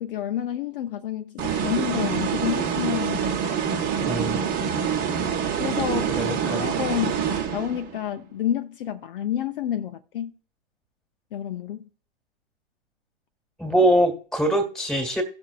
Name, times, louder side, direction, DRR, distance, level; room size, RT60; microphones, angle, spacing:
voice 1, 0.0-3.2 5.6-7.3 7.5-10.3 11.3-11.9, left 10 dB, 50° left, 0.6 m, -29 dB
sound 1, 1.4-8.0, right 7 dB, 25° right, 1.0 m, -26 dB
voice 2, 4.0-4.4 6.1-6.6 13.6-15.2, right 1 dB, ahead, 1.5 m, -23 dB
18.0 x 6.0 x 2.4 m
hypercardioid pair, 125°, 35 cm